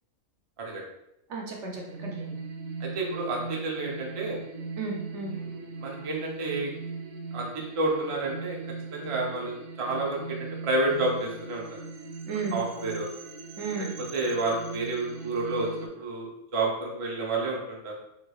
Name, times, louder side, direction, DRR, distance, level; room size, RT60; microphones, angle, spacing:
voice 1, 1.3-2.4 4.8-5.3 12.2-12.6 13.6-13.9, right 4 dB, 65° right, -1 dB, 0.8 m, -34 dB
sound 1, 1.7-15.9, right 4 dB, 85° right, 1.1 m, -39 dB
voice 2, 2.8-4.4 5.5-6.7 7.3-8.6 8.9-11.8 12.5-13.1 13.8-13.9 14.1-15.7 16.0-17.9, right 2 dB, 40° right, -2 dB, 0.5 m, -30 dB
3.6 x 3.2 x 2.3 m, 0.83 s
omnidirectional pair, 1.5 m